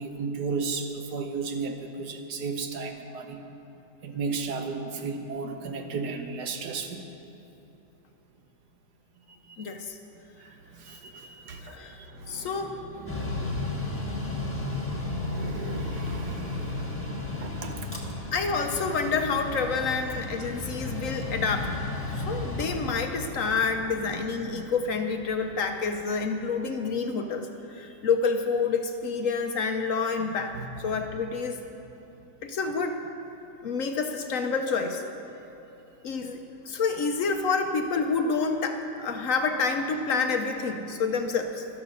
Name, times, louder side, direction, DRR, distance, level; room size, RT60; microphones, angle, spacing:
voice 1, 0.0-3.4 4.0-7.0 9.5-9.7 10.4-13.4 14.8-17.1 17.4-17.9 24.1-24.7 30.3-30.7, right 4 dB, 70° right, 5 dB, 1.5 m, -35 dB
voice 2, 9.6-10.0 11.6-12.0 12.3-12.7 18.3-21.8 22.2-30.5 30.8-31.6 32.4-33.0 33.6-35.0 36.0-41.7, left 4 dB, 60° left, 6 dB, 1.0 m, -28 dB
Mechanical fan, 13.0-26.4, left 2 dB, 10° left, 1.5 m, -34 dB
13.0 x 12.5 x 5.4 m, 2.9 s
omnidirectional pair, 1.8 m